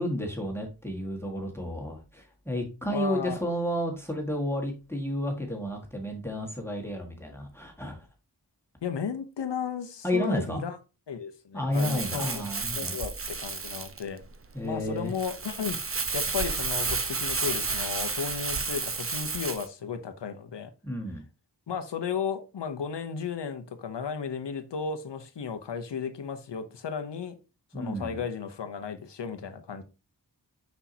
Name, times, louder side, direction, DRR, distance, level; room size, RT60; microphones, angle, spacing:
voice 1, 0.0-8.0 10.0-10.6 11.5-13.0 14.5-15.1 20.8-21.2 27.7-28.2, equal, 5° left, 1.7 m, -31 dB
voice 2, 2.9-3.4 8.8-10.8 11.1-12.5 12.8-14.2 14.6-15.8 16.1-20.7 21.7-27.3 27.7-29.8, left 6 dB, 90° left, 0.9 m, -34 dB
Crumpling crinkling, 11.7-19.7, right 4 dB, 35° right, 0.8 m, -31 dB
6.2 x 5.6 x 2.8 m
wide cardioid pair, 60°, 41 cm